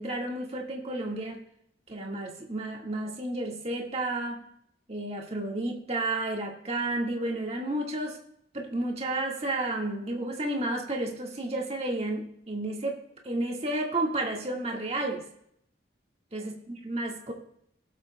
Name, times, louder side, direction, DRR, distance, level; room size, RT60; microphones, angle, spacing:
voice 1, 0.0-1.4 1.9-4.4 4.9-8.2 8.5-13.0 13.2-15.2 16.3-17.3, right 2 dB, 35° right, 0 dB, 1.7 m, -31 dB
19.0 x 8.2 x 2.2 m, 0.70 s
head